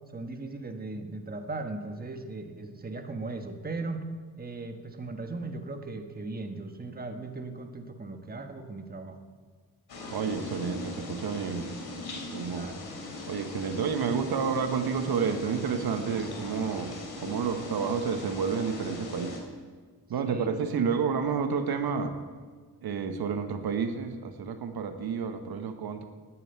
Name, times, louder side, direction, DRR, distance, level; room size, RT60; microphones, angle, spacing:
voice 1, 0.1-4.1 4.4-9.2 12.5-12.8 20.2-20.5, right 3 dB, 25° right, 5 dB, 1.4 m, -38 dB
sound 1, 9.9-19.4, left 2 dB, 70° left, 3.1 m, -40 dB
voice 2, 10.1-11.8 12.3-12.7 13.3-19.4 20.1-22.2 22.8-26.0, right 6 dB, 70° right, 7 dB, 1.1 m, -30 dB
11.0 x 9.2 x 9.0 m, 1.5 s
cardioid pair, 90°, 38 cm